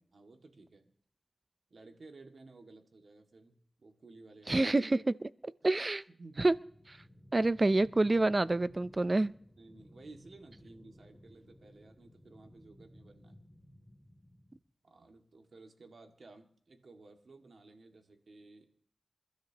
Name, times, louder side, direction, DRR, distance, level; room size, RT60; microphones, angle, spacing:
voice 1, 0.1-0.9 1.7-4.7 6.1-6.5 9.6-13.4 14.8-18.7, right 3 dB, 80° right, 4 dB, 2.2 m, -55 dB
voice 2, 4.5-6.0 6.4-6.6 7.3-9.3, right 2 dB, 40° right, 16 dB, 0.6 m, -28 dB
sound 1, 6.6-14.6, equal, 10° left, 2.8 m, -58 dB
28.5 x 12.5 x 3.0 m, 0.62 s
cardioid pair, 50°, 0 cm